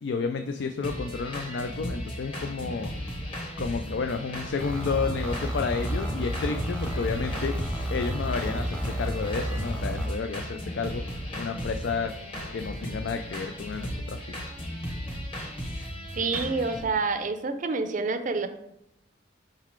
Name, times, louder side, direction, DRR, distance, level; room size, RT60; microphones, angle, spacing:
voice 1, 0.0-2.9 3.6-7.6 7.9-11.0 11.3-12.1 12.5-14.4, left 5 dB, 60° left, 6 dB, 0.4 m, -31 dB
sound 1, 0.8-16.8, equal, 30° left, 1.2 m, -36 dB
sound 2, 4.6-10.1, equal, 5° left, 0.8 m, -31 dB
voice 2, 16.2-18.5, right 4 dB, 40° right, 8 dB, 0.5 m, -28 dB
5.5 x 3.9 x 4.5 m, 0.81 s
head